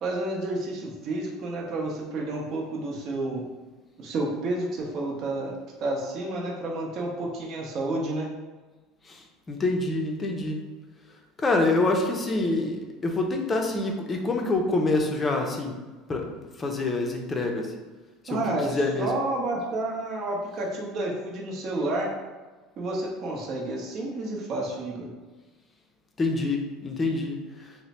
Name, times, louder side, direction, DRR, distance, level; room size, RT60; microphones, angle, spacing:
voice 1, 0.0-3.4 4.0-5.5 5.8-8.3 18.3-18.7 19.0-22.1 22.8-25.1, right 2 dB, 45° right, -1 dB, 0.8 m, -30 dB
voice 2, 9.5-10.6 11.4-15.7 16.1-16.3 16.6-17.7 18.2-19.1 26.2-27.4, left 2 dB, 20° left, 2 dB, 0.5 m, -26 dB
3.1 x 2.1 x 4.1 m, 1.3 s
supercardioid pair, 120°, 0 cm